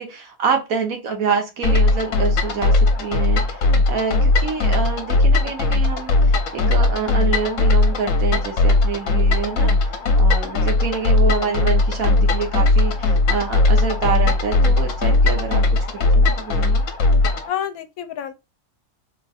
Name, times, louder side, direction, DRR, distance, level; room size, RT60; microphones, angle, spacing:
voice 1, 0.0-3.6 3.9-9.9 10.2-16.8, right 5 dB, 70° right, 1.5 m, -26 dB
sound 1, 1.6-17.5, left 2 dB, 65° left, 1.1 m, -18 dB
voice 2, 10.5-10.9 17.5-18.3, left 10 dB, 85° left, 1.1 m, -29 dB
3.8 x 2.6 x 2.3 m
omnidirectional pair, 1.5 m